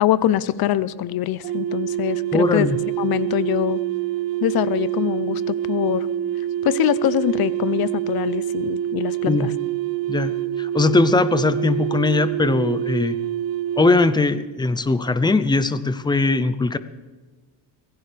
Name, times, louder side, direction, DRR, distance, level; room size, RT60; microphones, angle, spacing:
voice 1, 0.0-2.7 3.0-3.8 4.4-6.1 6.6-9.5, left 12 dB, 55° left, 18 dB, 0.7 m, -23 dB
sound 1, 1.4-14.2, right 13 dB, 50° right, 0.7 m, -26 dB
voice 2, 2.3-2.8 9.3-9.5 10.1-13.2 13.8-16.8, left 3 dB, 10° left, 13 dB, 0.6 m, -20 dB
24.5 x 17.0 x 3.4 m, 1.3 s
cardioid pair, 135°, 45 cm